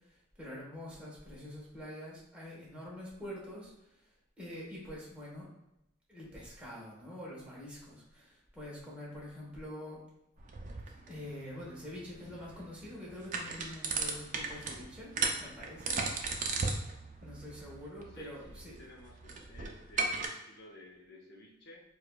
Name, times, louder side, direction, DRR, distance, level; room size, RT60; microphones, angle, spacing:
voice 1, 0.1-4.0 4.4-5.5 6.1-10.0 11.1-15.1 15.4-16.0 17.2-18.8, left 1 dB, 5° right, -6 dB, 1.0 m, -46 dB
sound 1, 10.4-20.3, right 4 dB, 40° right, 0.4 m, -37 dB
voice 2, 18.1-21.8, left 1 dB, 55° left, -2 dB, 0.8 m, -54 dB
4.9 x 2.4 x 2.2 m, 0.86 s
head